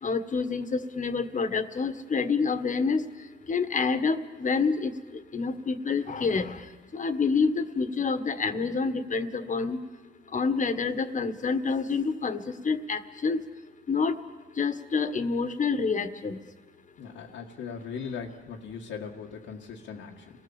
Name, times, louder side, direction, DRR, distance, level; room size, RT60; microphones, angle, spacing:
voice 1, 0.0-3.0 3.5-4.9 5.3-6.5 6.9-9.8 10.3-13.4 13.9-14.1 14.6-16.4, left 4 dB, 40° left, 10 dB, 1.7 m, -27 dB
voice 2, 17.0-20.3, left 6 dB, 85° left, -4 dB, 2.0 m, -39 dB
29.5 x 19.5 x 7.3 m, 1.3 s
cardioid pair, 90°, 20 cm